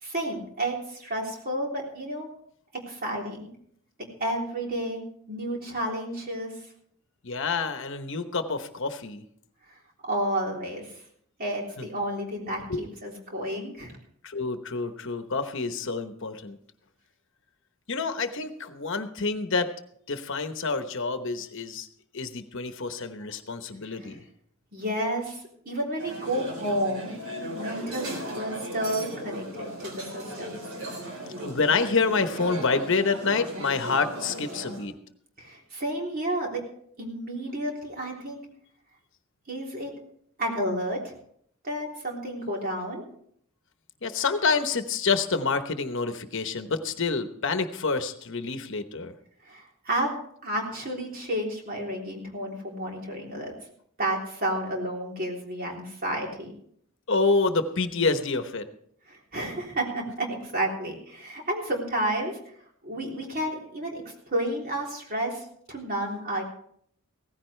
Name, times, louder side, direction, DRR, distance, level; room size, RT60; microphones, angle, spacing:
voice 1, 0.0-2.3 2.7-3.5 4.2-5.0 5.3-6.5 10.0-10.9 11.4-13.9 24.7-27.1 27.6-30.6 35.4-36.6 37.0-38.4 39.5-39.9 40.4-41.1 41.6-43.0 49.5-50.1 50.4-53.6 54.0-56.5 59.1-62.4 62.8-66.4, right 1 dB, 45° right, -1 dB, 3.4 m, -31 dB
voice 2, 7.2-9.2 11.8-11.9 12.7-12.8 14.2-16.6 17.9-19.7 20.1-21.9 22.1-24.2 31.4-34.9 44.0-49.1 57.1-58.7, left 4 dB, 60° left, 9 dB, 1.0 m, -27 dB
sound 1, 26.0-34.9, right 1 dB, 85° right, 3.9 m, -37 dB
16.5 x 15.0 x 3.3 m, 0.66 s
head